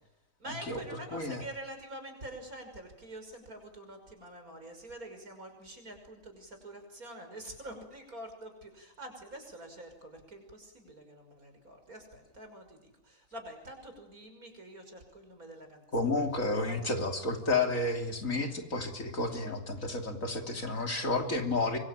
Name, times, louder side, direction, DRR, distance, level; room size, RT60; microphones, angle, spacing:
voice 1, 0.4-16.1 16.7-17.0 19.3-19.6, right 1 dB, 65° right, 6 dB, 6.4 m, -46 dB
voice 2, 1.1-1.4 15.9-21.8, left 2 dB, 55° left, 5 dB, 3.4 m, -31 dB
26.0 x 23.5 x 8.9 m, 0.93 s
omnidirectional pair, 1.7 m